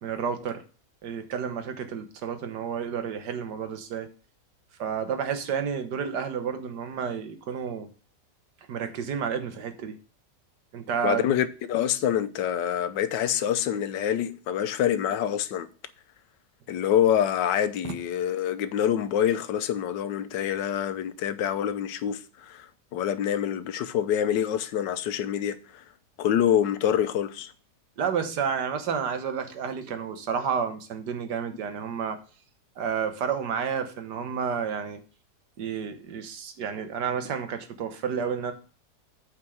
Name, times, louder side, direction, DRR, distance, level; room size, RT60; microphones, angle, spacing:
voice 1, 0.0-0.6 1.0-4.1 4.8-7.9 8.7-10.0 10.7-11.3 28.0-32.2 32.8-35.0 35.6-38.5, right 7 dB, 75° right, 1.7 m, -30 dB
voice 2, 11.0-15.7 16.7-25.8 26.2-27.5, left 10 dB, 90° left, 1.4 m, -26 dB
8.8 x 4.5 x 6.2 m
omnidirectional pair, 1.9 m